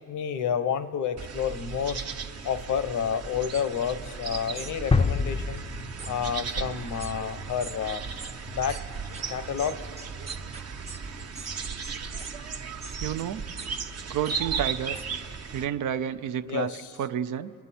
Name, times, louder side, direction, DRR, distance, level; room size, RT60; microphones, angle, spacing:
voice 1, 0.1-2.0 2.4-5.6 6.1-8.0 8.5-8.8 9.3-9.9 16.4-16.9, left 8 dB, 65° left, 12 dB, 0.8 m, -30 dB
sound 1, 1.2-15.7, right 5 dB, 50° right, 0.9 m, -36 dB
sound 2, 4.6-4.7 6.0-6.1 7.0-7.1 7.6-7.8 8.2-8.3 8.7-8.8 9.1-9.2 9.6-11.0 11.4-11.5 11.8-12.3 12.8-13.0 13.6-13.7 14.3-14.4 14.9-15.1, right 3 dB, 20° right, 0.7 m, -42 dB
sound 3, 4.9-6.8, left 4 dB, 20° left, 0.5 m, -26 dB
voice 2, 13.0-13.4 14.1-15.0 15.5-16.7 17.0-17.5, right 9 dB, 70° right, 12 dB, 0.6 m, -30 dB
23.0 x 9.4 x 4.2 m, 2.7 s
supercardioid pair, 65°, 32 cm